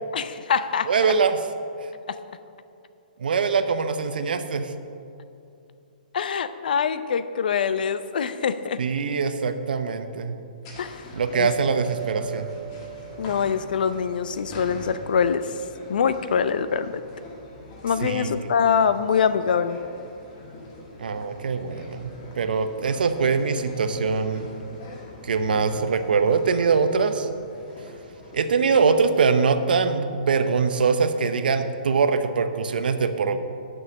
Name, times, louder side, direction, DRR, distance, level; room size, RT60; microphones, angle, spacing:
voice 1, 0.1-1.1 2.1-2.2 6.1-8.8 10.8-11.1 11.4-11.5 13.2-15.5 15.9-17.0 17.8-19.8, left 7 dB, 70° left, 13 dB, 0.6 m, -24 dB
voice 2, 0.9-1.4 3.2-4.7 8.8-10.4 11.1-12.5 18.0-18.4 21.0-24.5 25.2-27.3 28.3-33.4, right 5 dB, 80° right, 9 dB, 0.8 m, -23 dB
sound 1, 10.6-29.1, left 2 dB, 35° left, 1.7 m, -44 dB
sound 2, 11.3-14.3, right 12 dB, 10° right, 1.4 m, -38 dB
9.9 x 6.3 x 6.5 m, 2.6 s
hypercardioid pair, 155°, 5 cm